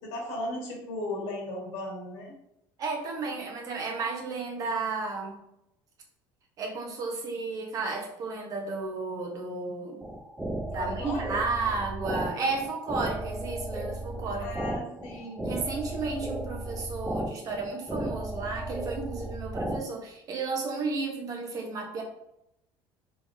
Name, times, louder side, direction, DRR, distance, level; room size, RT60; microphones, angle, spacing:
voice 1, 0.0-2.3 10.7-11.3 14.4-15.5, left 1 dB, 90° left, -3 dB, 1.3 m, -36 dB
voice 2, 2.8-5.4 6.6-10.0 10.7-14.5 15.4-22.0, right 3 dB, 40° right, 1 dB, 0.8 m, -33 dB
sound 1, 10.0-19.8, right 1 dB, 5° right, 0.3 m, -35 dB
3.9 x 3.3 x 2.5 m, 0.83 s
cardioid pair, 145°, 9 cm